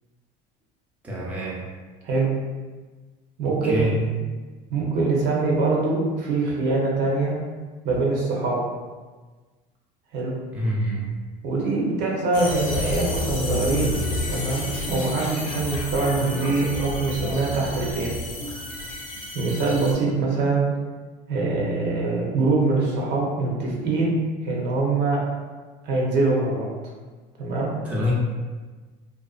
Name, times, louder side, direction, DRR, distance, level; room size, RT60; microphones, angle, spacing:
voice 1, 1.0-1.6 3.4-3.9 10.5-11.1 27.8-28.1, equal, 5° right, -5 dB, 0.5 m, -26 dB
voice 2, 3.4-3.9 4.7-7.4 7.8-8.6 10.1-10.3 11.4-14.0 14.3-18.2 19.3-20.6 21.3-24.2 24.4-25.2 25.8-26.7 27.4-27.7, right 3 dB, 60° right, -3 dB, 0.7 m, -23 dB
sound 1, 12.3-19.9, left 1 dB, 70° left, 0.7 m, -30 dB
2.5 x 2.3 x 2.4 m, 1.3 s
supercardioid pair, 110°, 20 cm